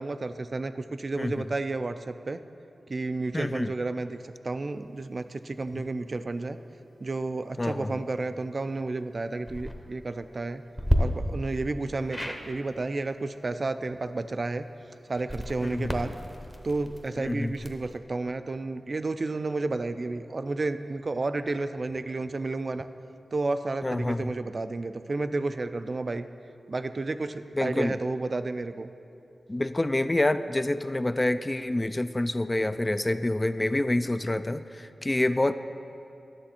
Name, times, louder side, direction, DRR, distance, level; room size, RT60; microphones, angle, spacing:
voice 1, 0.0-2.4 2.9-6.6 7.0-10.6 11.0-14.7 15.1-16.2 16.6-22.9 23.3-26.3 26.7-28.9, right 3 dB, 50° right, 10 dB, 0.3 m, -31 dB
voice 2, 3.3-3.7 7.6-7.9 15.6-15.9 17.2-17.5 23.8-24.3 27.6-27.9 29.5-35.5, left 1 dB, 25° left, 11 dB, 0.3 m, -27 dB
sound 1, 9.4-9.7 10.8-11.0 12.1-12.4 15.2-18.0, equal, 10° left, 0.8 m, -31 dB
10.5 x 6.8 x 4.3 m, 2.8 s
cardioid pair, 60°, 0 cm